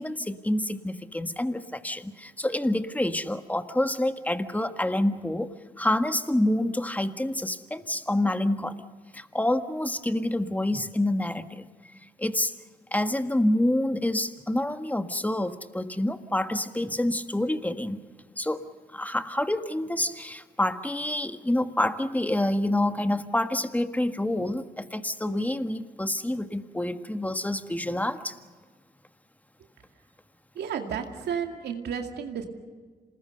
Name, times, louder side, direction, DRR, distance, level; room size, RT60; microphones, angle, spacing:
voice 1, 0.0-5.5 5.8-8.8 9.1-11.7 12.2-12.5 12.9-18.0 18.4-18.6 18.9-28.4, left 1 dB, 10° left, 9 dB, 1.6 m, -27 dB
voice 2, 30.5-32.5, right 7 dB, 80° right, 4 dB, 2.3 m, -32 dB
27.0 x 19.5 x 6.7 m, 1.5 s
supercardioid pair, 50°, 17 cm